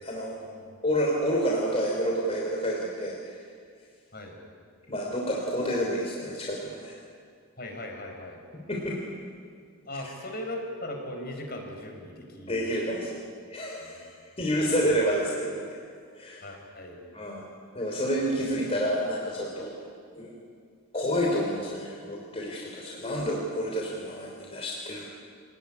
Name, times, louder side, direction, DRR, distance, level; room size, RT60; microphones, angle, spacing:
voice 1, 0.0-0.4 0.8-3.4 4.9-7.0 8.5-9.0 10.0-10.1 12.5-13.1 13.5-14.1 14.4-15.7 16.2-16.5 17.1-17.4 17.7-19.8 20.2-20.3 20.9-25.1, equal, 25° left, -2 dB, 3.4 m, -29 dB
voice 2, 7.6-8.4 9.9-12.8 13.8-14.0 16.4-17.0, left 1 dB, 45° left, 2 dB, 5.1 m, -39 dB
26.5 x 19.0 x 9.9 m, 2.2 s
head